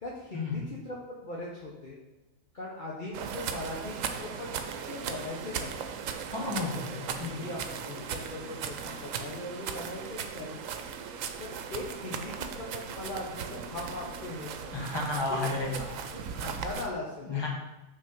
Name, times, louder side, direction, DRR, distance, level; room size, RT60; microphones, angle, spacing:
voice 1, 0.0-2.0 2.5-6.0 6.6-10.6 11.4-14.8 15.3-17.3, left 2 dB, 45° left, -4 dB, 1.1 m, -40 dB
sound 1, 3.1-16.9, right 7 dB, 85° right, 1.0 m, -38 dB
voice 2, 6.3-7.5 14.7-15.7 17.2-17.5, left 3 dB, 20° left, -1 dB, 1.3 m, -32 dB
6.0 x 3.8 x 5.9 m, 1.0 s
omnidirectional pair, 1.3 m